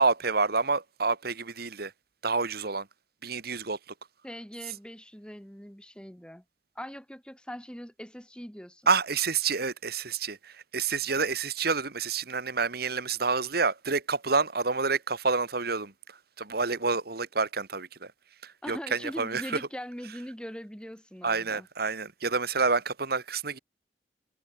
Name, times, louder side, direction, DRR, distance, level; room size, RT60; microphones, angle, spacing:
voice 1, 0.0-1.9 2.2-2.9 3.2-3.8 8.9-18.1 18.4-19.6 21.2-23.6, right 4 dB, 60° right, 2.2 m, -28 dB
voice 2, 4.2-6.4 6.7-8.9 18.6-21.7, equal, 5° left, 6.8 m, -41 dB
head